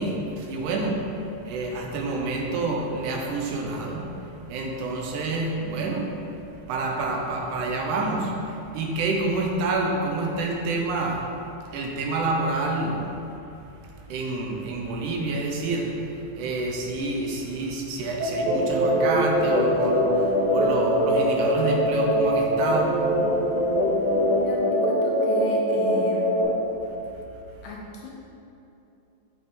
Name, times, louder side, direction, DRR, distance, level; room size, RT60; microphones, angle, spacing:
voice 1, 0.0-6.2 6.7-11.3 11.7-13.1 14.1-23.1, right 2 dB, 90° right, 1 dB, 2.2 m, -28 dB
sound 1, 18.2-26.4, equal, 70° right, 2.4 m, -22 dB
voice 2, 24.4-26.4 27.6-28.1, left 2 dB, 75° left, -2 dB, 1.9 m, -35 dB
7.0 x 5.3 x 3.1 m, 2.8 s
omnidirectional pair, 3.6 m